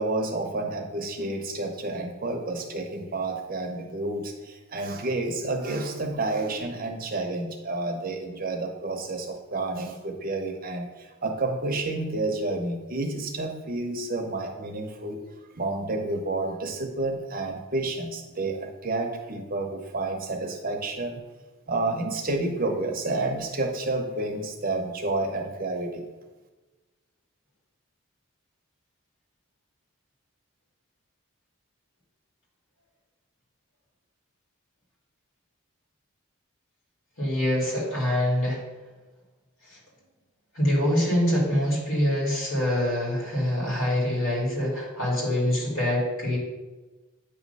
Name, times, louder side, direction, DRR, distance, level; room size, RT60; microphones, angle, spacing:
voice 1, 0.0-15.2 15.5-21.2 21.7-26.0, right 2 dB, 45° right, 3 dB, 0.8 m, -30 dB
voice 2, 37.2-38.6 39.7-39.8 40.5-46.4, left 1 dB, 75° left, -4 dB, 2.5 m, -25 dB
8.9 x 3.1 x 5.4 m, 1.2 s
head